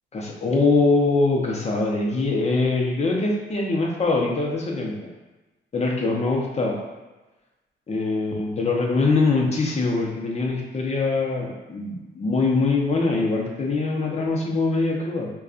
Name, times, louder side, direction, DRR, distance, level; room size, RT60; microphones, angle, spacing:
voice 1, 0.1-5.1 5.7-6.8 7.9-15.3, left 3 dB, 35° left, -1 dB, 0.8 m, -23 dB
5.2 x 2.3 x 2.5 m, 1.1 s
cardioid pair, 90°, 20 cm